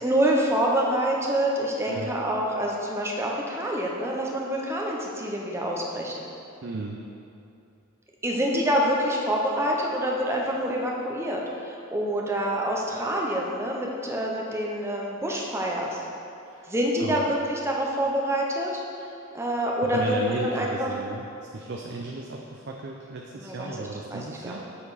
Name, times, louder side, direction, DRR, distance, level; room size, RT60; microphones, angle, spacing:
voice 1, 0.0-6.1 8.2-16.0 16.7-18.7 19.3-20.2 20.4-20.9 23.3-24.6, right 1 dB, 15° right, -2 dB, 0.9 m, -26 dB
voice 2, 1.8-2.2 6.6-7.0 16.5-16.7 17.0-17.3 19.8-21.3 21.5-24.6, right 2 dB, 55° right, 0 dB, 0.5 m, -34 dB
7.2 x 6.9 x 4.1 m, 2.7 s
head